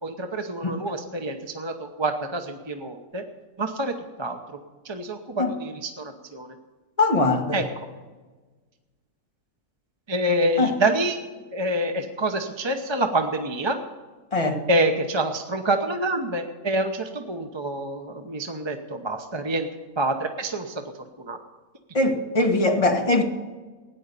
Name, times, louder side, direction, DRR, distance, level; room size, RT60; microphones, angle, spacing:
voice 1, 0.0-3.2 3.6-4.4 4.8-6.5 7.5-7.6 10.1-11.2 11.5-13.8 14.7-19.7 20.0-20.8 21.2-21.4, right 1 dB, 25° right, 0.7 m, -27 dB
voice 2, 7.0-7.6 10.6-10.7 14.3-14.6 21.9-23.2, left 2 dB, 25° left, 1.5 m, -21 dB
16.5 x 10.0 x 6.8 m
omnidirectional pair, 1.6 m